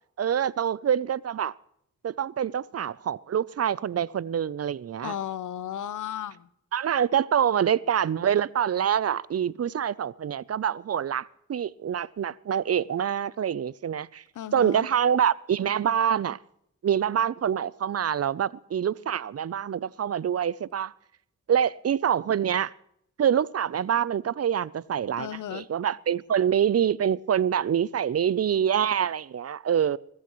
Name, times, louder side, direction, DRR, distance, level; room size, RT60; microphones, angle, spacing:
voice 1, 0.2-1.5 2.0-5.1 6.7-14.2 14.5-16.4 16.8-20.9 21.5-22.7 23.2-30.0, right 9 dB, 55° right, 0.5 m, -26 dB
voice 2, 5.0-6.5 14.4-14.9 25.2-25.7, left 10 dB, 85° left, 0.7 m, -34 dB
21.5 x 14.5 x 3.1 m
cardioid pair, 60°, 30 cm